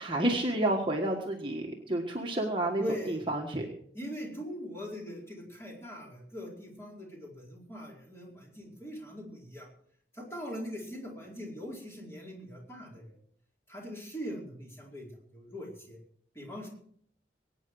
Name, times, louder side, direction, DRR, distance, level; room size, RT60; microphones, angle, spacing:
voice 1, 0.0-3.7, right 1 dB, 30° right, 0 dB, 1.6 m, -30 dB
voice 2, 2.8-3.2 3.9-9.7 10.1-13.2 13.7-16.0 16.3-16.7, equal, 15° left, -3 dB, 4.6 m, -41 dB
23.0 x 9.2 x 4.8 m, 0.62 s
head